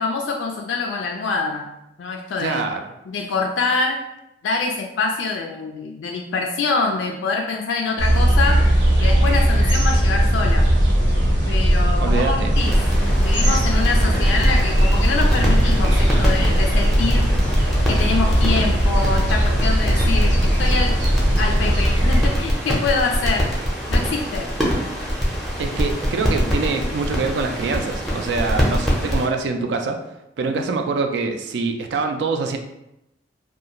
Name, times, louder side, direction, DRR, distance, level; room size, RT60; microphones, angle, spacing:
voice 1, 0.0-1.7 2.0-2.6 3.1-4.0 4.4-8.6 9.0-10.7 11.5-12.7 13.2-17.3 17.9-21.0 21.4-23.5 23.9-24.5, left 4 dB, 85° left, 1 dB, 0.3 m, -25 dB
voice 2, 2.4-3.0 12.0-12.6 25.6-30.0 30.4-32.6, right 4 dB, 65° right, 5 dB, 0.3 m, -24 dB
sound 1, 8.0-22.3, equal, 85° right, 0.9 m, -18 dB
sound 2, 12.5-29.3, equal, ahead, 0.5 m, -24 dB
2.4 x 2.3 x 2.9 m, 0.86 s
head